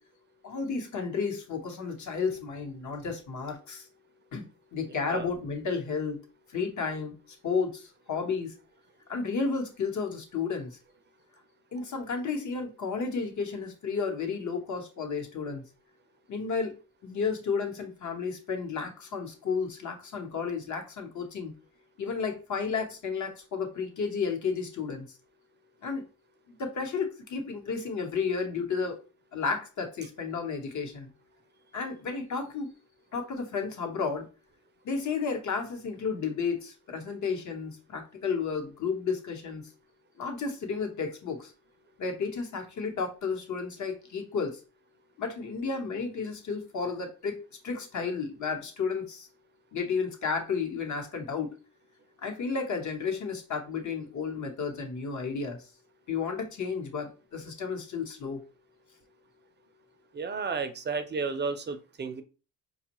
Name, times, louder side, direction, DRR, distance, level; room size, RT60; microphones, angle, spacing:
voice 1, 0.4-3.9 4.3-6.2 6.5-7.1 7.4-8.5 9.1-10.8 11.7-15.6 16.3-16.8 17.0-21.5 22.0-25.1 25.8-26.1 26.5-29.0 29.3-31.1 31.7-32.7 33.1-34.2 34.8-39.6 40.2-41.5 42.0-44.6 45.2-47.4 47.6-49.3 49.7-51.5 52.2-55.7 56.1-58.4, left 5 dB, 55° left, 3 dB, 1.0 m, -32 dB
voice 2, 60.1-62.2, right 4 dB, 30° right, 8 dB, 0.4 m, -32 dB
5.2 x 2.3 x 2.9 m, 0.34 s
cardioid pair, 125°, 34 cm